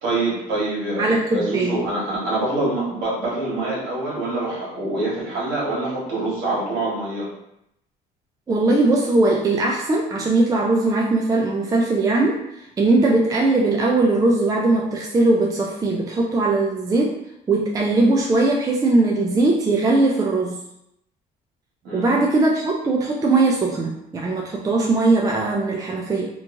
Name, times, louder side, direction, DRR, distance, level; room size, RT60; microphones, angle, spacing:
voice 1, 0.0-7.3 21.8-22.1, right 2 dB, 90° right, -6 dB, 1.3 m, -25 dB
voice 2, 1.0-1.9 8.5-12.4 12.8-17.2 17.5-20.6 21.9-26.3, right 2 dB, 20° right, -1 dB, 0.4 m, -20 dB
3.0 x 2.4 x 2.5 m, 0.80 s
cardioid pair, 110°, 17 cm